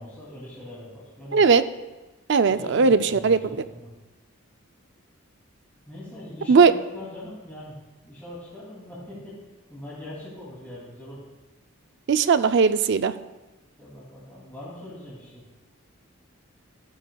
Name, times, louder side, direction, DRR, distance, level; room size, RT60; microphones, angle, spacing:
voice 1, 0.0-1.5 2.5-3.9 5.9-7.8 8.0-9.4 9.7-11.3 13.8-15.4, left 1 dB, 10° left, -8 dB, 2.6 m, -41 dB
voice 2, 1.3-1.6 2.3-3.4 6.5-6.7 12.1-13.1, right 5 dB, 55° right, 11 dB, 0.4 m, -18 dB
14.0 x 9.8 x 2.3 m, 1.1 s
head